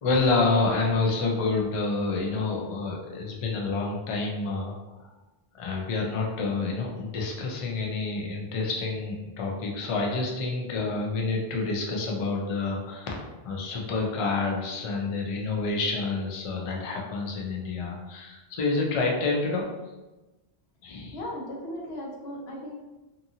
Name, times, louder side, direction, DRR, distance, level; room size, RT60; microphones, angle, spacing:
voice 1, 0.0-5.1 5.6-19.7 20.8-21.1, left 3 dB, 45° left, -1 dB, 0.4 m, -28 dB
voice 2, 21.1-22.7, left 1 dB, 85° left, -1 dB, 0.9 m, -36 dB
2.6 x 2.4 x 2.7 m, 1.1 s
omnidirectional pair, 1.0 m